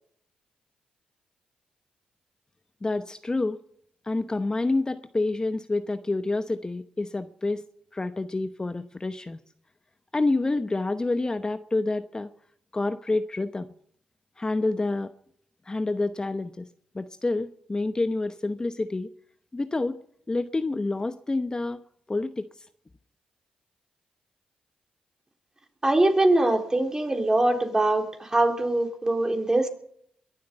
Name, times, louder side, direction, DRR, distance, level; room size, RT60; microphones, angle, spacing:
voice 1, 2.8-3.6 4.0-7.6 7.9-9.4 10.1-12.3 12.7-13.7 14.4-15.1 15.7-16.7 16.9-19.1 19.5-20.0 20.3-21.8 22.1-22.7, left 2 dB, 25° left, 10 dB, 0.9 m, -28 dB
voice 2, 25.8-29.7, right 2 dB, 20° right, 4 dB, 3.4 m, -23 dB
22.5 x 7.7 x 6.7 m, 0.66 s
supercardioid pair, 50°, 3 cm